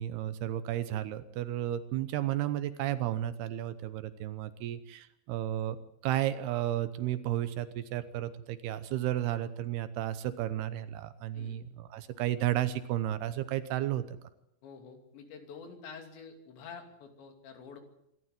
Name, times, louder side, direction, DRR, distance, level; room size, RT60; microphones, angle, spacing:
voice 1, 0.0-5.8 6.0-14.0, right 12 dB, 75° right, 13 dB, 2.8 m, -33 dB
voice 2, 14.6-17.8, left 5 dB, 85° left, 5 dB, 5.1 m, -48 dB
25.0 x 13.0 x 9.6 m, 0.79 s
omnidirectional pair, 5.0 m